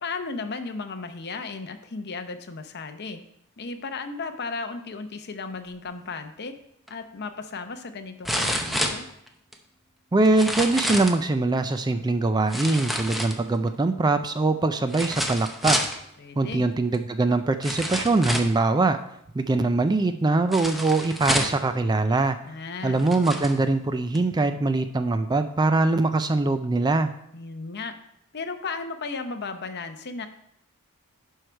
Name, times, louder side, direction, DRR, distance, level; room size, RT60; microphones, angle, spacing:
voice 1, 0.0-3.2 3.6-6.5 6.9-9.1 16.2-16.7 22.4-23.0 27.3-27.9 28.3-30.3, left 4 dB, 50° left, 8 dB, 0.7 m, -35 dB
sound 1, 6.9-7.0 8.2-9.5 10.3-11.2 12.5-13.7 14.9-16.0 16.9-17.0 17.6-18.6 20.5-21.7 22.5-22.6 23.0-23.6 24.1-24.2, equal, ahead, 0.7 m, -28 dB
voice 2, 10.1-15.8 16.4-19.0 19.3-22.4 22.8-27.1, right 3 dB, 20° right, 9 dB, 0.3 m, -22 dB
11.0 x 4.7 x 4.4 m, 0.75 s
head